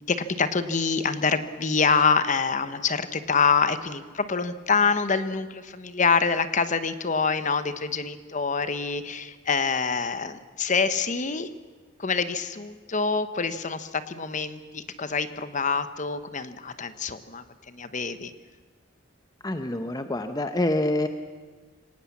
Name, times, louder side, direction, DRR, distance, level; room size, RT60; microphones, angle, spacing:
voice 1, 0.0-11.5 12.0-18.3, left 5 dB, 40° left, 11 dB, 1.0 m, -26 dB
voice 2, 19.4-21.1, left 1 dB, 20° left, 8 dB, 0.8 m, -26 dB
24.5 x 18.5 x 7.3 m, 1.4 s
head